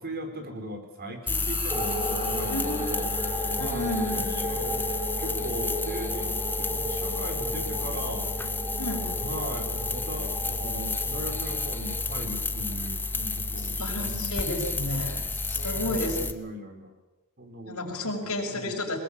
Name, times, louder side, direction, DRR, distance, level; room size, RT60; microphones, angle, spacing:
voice 1, 0.0-3.1 3.6-4.9 5.2-8.3 9.2-15.1 15.6-16.9 17.4-18.8, right 1 dB, 45° right, 6 dB, 4.4 m, -39 dB
sound 1, 1.2-7.8, right 1 dB, 25° right, 4.4 m, -47 dB
sound 2, 1.3-16.3, left 3 dB, 10° left, 1.0 m, -31 dB
sound 3, 1.7-12.8, equal, 10° right, 6.8 m, -35 dB
voice 2, 2.5-3.0 3.6-4.4 8.8-9.1 13.6-16.3 17.7-19.0, left 2 dB, 75° left, 1 dB, 5.8 m, -32 dB
22.5 x 21.5 x 8.7 m, 1.1 s
head